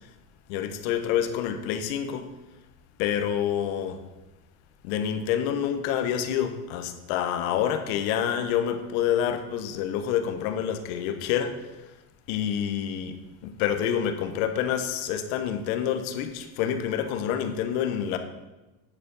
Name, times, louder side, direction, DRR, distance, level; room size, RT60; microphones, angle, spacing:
voice 1, 0.5-2.3 3.0-4.0 4.8-11.8 12.3-18.2, left 9 dB, 70° left, 8 dB, 1.3 m, -27 dB
9.8 x 7.0 x 5.5 m, 1.1 s
supercardioid pair, 140°, 44 cm